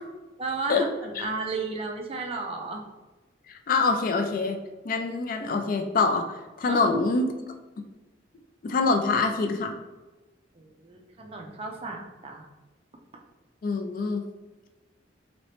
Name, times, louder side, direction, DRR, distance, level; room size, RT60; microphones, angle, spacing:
voice 1, 0.4-2.8 6.7-6.8 10.5-12.5 13.1-13.2, right 3 dB, 30° right, 2 dB, 0.4 m, -33 dB
voice 2, 3.7-4.6 4.8-6.3 6.6-7.3 8.6-9.7 13.6-14.2, left 4 dB, 45° left, 5 dB, 0.3 m, -25 dB
3.0 x 2.8 x 3.0 m, 1.2 s
head